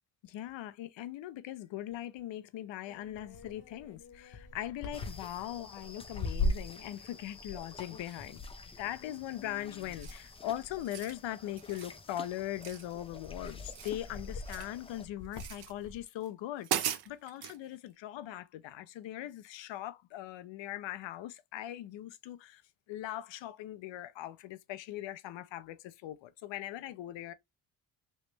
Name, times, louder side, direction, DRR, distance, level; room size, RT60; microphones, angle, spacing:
voice 1, 0.2-8.4 8.8-22.6 22.9-27.3, left 13 dB, 70° left, 0.6 m, -40 dB
sound 1, 2.9-9.7 10.0-10.8 11.6-12.0 12.5-12.6 12.9-16.0, left 2 dB, 40° left, 1.0 m, -40 dB
sound 2, 4.9-15.1, left 3 dB, 15° left, 0.3 m, -49 dB
sound 3, 10.0-10.3 10.7-11.2 11.6-12.0 12.6-13.3 13.5-14.8 15.3-15.7 16.2-16.3 16.6-17.6, right 11 dB, 55° right, 0.6 m, -38 dB
3.2 x 2.9 x 3.3 m
cardioid pair, 100°, 47 cm